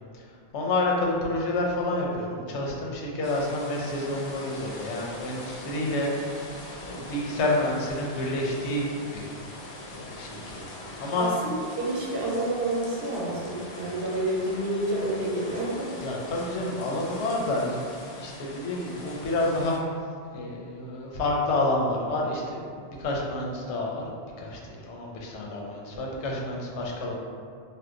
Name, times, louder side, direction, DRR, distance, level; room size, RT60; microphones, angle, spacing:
voice 1, 0.5-6.4 6.8-9.3 9.9-10.6 11.0-11.4 16.0-17.8 18.2-20.0 20.3-24.1 24.4-27.2, left 2 dB, 90° left, -2 dB, 0.9 m, -29 dB
sound 1, 3.2-19.8, left 1 dB, 60° left, 0.6 m, -42 dB
voice 2, 11.2-16.0, right 1 dB, 65° right, -4 dB, 0.8 m, -29 dB
2.7 x 2.1 x 3.5 m, 2.2 s
omnidirectional pair, 1.1 m